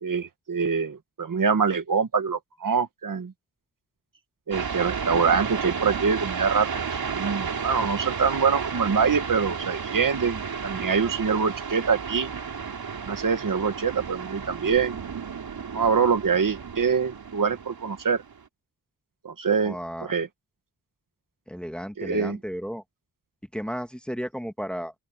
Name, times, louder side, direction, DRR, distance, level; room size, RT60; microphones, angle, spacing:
voice 1, 0.0-3.3 4.5-6.7 7.1-12.3 13.0-15.0 15.7-18.2 19.2-19.8 20.0-20.3 22.0-22.4, right 5 dB, 60° right, 1.7 m, -24 dB
sound 1, 4.5-18.4, right 6 dB, 80° right, 4.1 m, -33 dB
voice 2, 19.6-20.1 21.5-22.8 23.5-24.9, equal, 5° left, 1.7 m, -33 dB
open air
wide cardioid pair, 120°, 36 cm